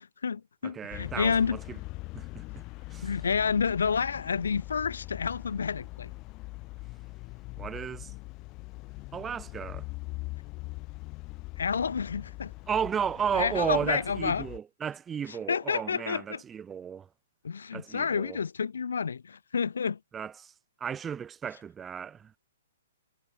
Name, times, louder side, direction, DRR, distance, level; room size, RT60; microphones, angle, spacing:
voice 1, 0.0-1.6 3.0-6.1 11.6-12.5 13.4-14.4 15.5-16.4 17.4-20.0, left 6 dB, 75° left, 0.3 m, -29 dB
voice 2, 0.6-1.8 2.1-2.6 2.9-3.1 7.6-8.1 9.1-9.9 12.7-17.1 17.7-18.4 20.1-22.3, right 7 dB, 15° right, 1.6 m, -34 dB
sound 1, 0.9-14.6, left 23 dB, 30° left, 5.5 m, -42 dB
hypercardioid pair, 130°, 0 cm